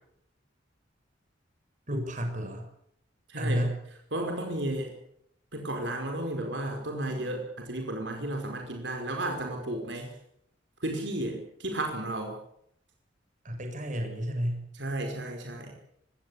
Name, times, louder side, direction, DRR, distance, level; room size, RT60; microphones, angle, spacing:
voice 1, 1.9-2.7 3.4-3.8 13.4-14.7, equal, 45° right, 5 dB, 6.2 m, -31 dB
voice 2, 3.3-3.7 4.1-4.9 5.5-10.1 10.8-12.4 14.7-15.8, right 1 dB, 65° right, 3 dB, 5.1 m, -33 dB
24.5 x 17.0 x 8.4 m, 0.73 s
head